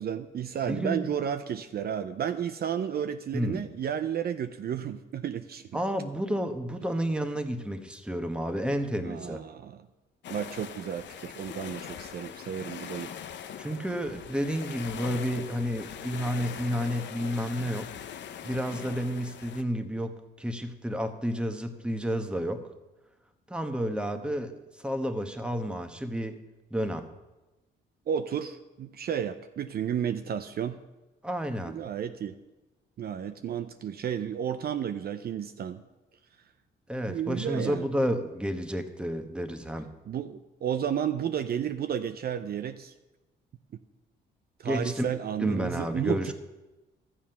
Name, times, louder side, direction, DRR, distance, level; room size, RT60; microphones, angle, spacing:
voice 1, 0.0-5.7 9.0-9.9 10.3-13.1 28.1-30.8 31.7-32.4 33.0-35.8 37.1-37.9 40.1-42.9 44.6-46.3, right 9 dB, 50° right, 9 dB, 0.5 m, -32 dB
voice 2, 0.7-1.1 3.3-3.6 5.7-9.4 13.6-17.9 18.4-22.6 23.5-26.4 26.7-27.0 31.2-31.8 36.9-39.9 44.6-45.1 45.4-46.3, equal, 5° right, 6 dB, 1.1 m, -31 dB
sound 1, 10.2-19.6, left 8 dB, 65° left, 0.7 m, -41 dB
12.5 x 7.3 x 5.7 m, 1.1 s
cardioid pair, 90°, 20 cm